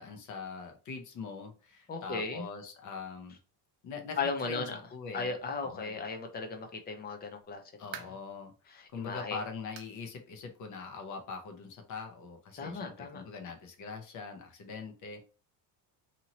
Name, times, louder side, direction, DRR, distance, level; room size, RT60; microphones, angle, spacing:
voice 1, 0.0-3.4 3.8-5.3 5.6-6.0 7.8-8.5 8.9-15.3, left 5 dB, 45° left, 5 dB, 0.8 m, -42 dB
voice 2, 1.9-2.5 4.2-4.8 5.1-7.6 8.7-9.4 12.6-13.2, left 4 dB, 25° left, 5 dB, 0.4 m, -36 dB
sound 1, 7.6-8.4 8.9-9.0 9.7-10.0 10.3-10.4 10.9-11.0 12.1-12.2, right 9 dB, 80° right, 0.7 m, -47 dB
2.7 x 2.7 x 2.9 m, 0.36 s
cardioid pair, 160°, 42 cm